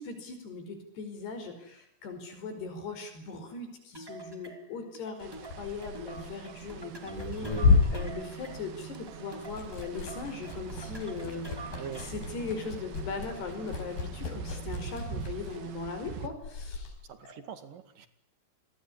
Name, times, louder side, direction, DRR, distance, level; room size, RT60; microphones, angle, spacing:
voice 1, 0.0-11.4 12.1-16.9 17.3-17.4, left 4 dB, 75° left, 7 dB, 7.0 m, -39 dB
sound 1, 3.9-12.3, right 2 dB, 5° right, 2.2 m, -47 dB
sound 2, 5.2-16.3, right 7 dB, 80° right, 3.8 m, -43 dB
Liquid, 5.3-9.0 9.3-16.9, left 4 dB, 55° left, 6.4 m, -32 dB
voice 2, 11.7-12.1 17.0-18.1, right 7 dB, 60° right, 11 dB, 3.5 m, -43 dB
27.0 x 22.0 x 9.9 m, 0.75 s
omnidirectional pair, 4.7 m